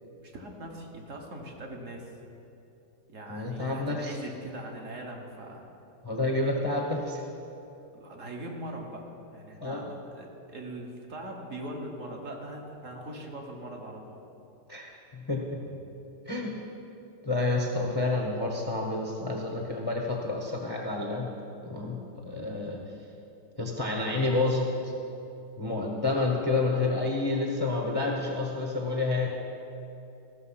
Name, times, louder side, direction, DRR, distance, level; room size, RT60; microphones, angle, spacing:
voice 1, 0.2-2.0 3.1-5.7 7.9-9.0 9.3-14.2, right 1 dB, 50° right, 1 dB, 1.5 m, -41 dB
voice 2, 3.3-4.2 6.0-7.2 9.6-9.9 14.7-15.6 16.3-16.6 17.2-21.3 21.6-22.8 23.6-24.9 25.6-29.3, left 2 dB, 20° left, 0 dB, 0.7 m, -29 dB
15.0 x 6.5 x 5.7 m, 2.8 s
omnidirectional pair, 1.9 m